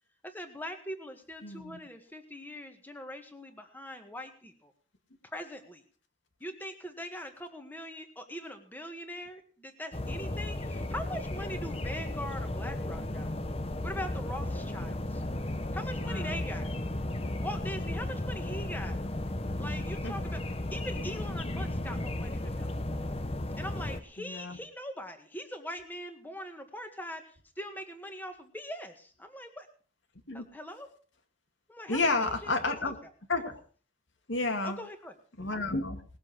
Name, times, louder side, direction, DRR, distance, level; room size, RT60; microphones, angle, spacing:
voice 1, 0.2-4.7 5.3-5.8 6.4-13.3 13.8-15.2 15.7-16.7 17.4-19.0 19.6-20.4 20.7-22.7 23.6-29.7 30.3-30.9 31.7-32.0 32.3-32.9 34.6-35.1 35.5-35.7, equal, 10° left, 6 dB, 1.8 m, -41 dB
voice 2, 1.4-1.8 16.0-16.4 20.0-20.1 24.2-24.6 30.3-30.5 31.9-33.0 33.3-33.6 34.3-34.8 35.4-36.0, left 3 dB, 70° left, 5 dB, 2.2 m, -31 dB
sound 1, 9.9-24.0, left 1 dB, 30° left, 0.9 m, -34 dB
20.0 x 7.6 x 6.0 m, 0.42 s
head